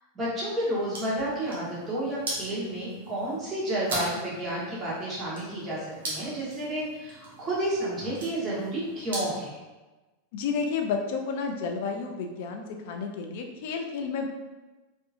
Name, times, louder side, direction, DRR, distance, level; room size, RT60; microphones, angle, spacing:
voice 1, 0.1-9.6, right 1 dB, 20° right, -7 dB, 1.1 m, -31 dB
sound 1, 0.6-9.5, right 1 dB, 90° right, 1.0 m, -40 dB
voice 2, 10.3-14.3, left 5 dB, 65° left, 3 dB, 0.4 m, -31 dB
2.7 x 2.6 x 2.4 m, 1.2 s
supercardioid pair, 125°, 0 cm